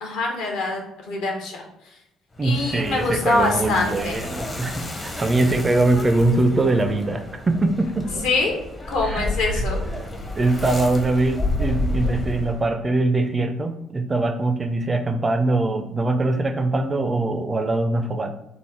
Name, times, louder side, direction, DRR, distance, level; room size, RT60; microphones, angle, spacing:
voice 1, 0.0-1.6 2.4-4.2 8.2-8.5 8.9-9.8, left 3 dB, 65° left, 1 dB, 0.7 m, -24 dB
sound 1, 2.4-12.8, left 1 dB, 25° left, 0.6 m, -30 dB
voice 2, 2.4-8.3 9.0-9.7 10.4-18.3, right 2 dB, 25° right, 7 dB, 0.3 m, -22 dB
3.3 x 2.0 x 4.1 m, 0.86 s
figure-of-eight pair, 45°, 0 cm